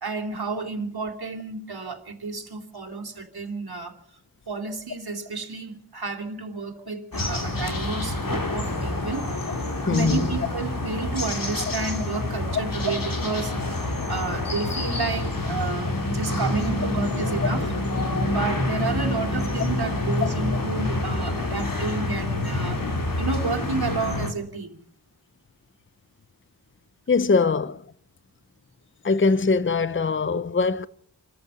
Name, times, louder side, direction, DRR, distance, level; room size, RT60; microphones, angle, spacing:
voice 1, 0.0-3.9 4.5-9.3 9.8-13.6 14.1-17.6 18.2-22.8 23.2-24.8, right 4 dB, 60° right, 3.0 m, -31 dB
sound 1, 7.1-24.3, left 2 dB, 50° left, 3.0 m, -27 dB
voice 2, 9.9-10.3 14.0-14.1 17.4-17.5 19.9-20.0 27.1-27.8 29.0-30.9, left 4 dB, 30° left, 0.8 m, -22 dB
27.0 x 13.5 x 7.0 m
wide cardioid pair, 90°, 43 cm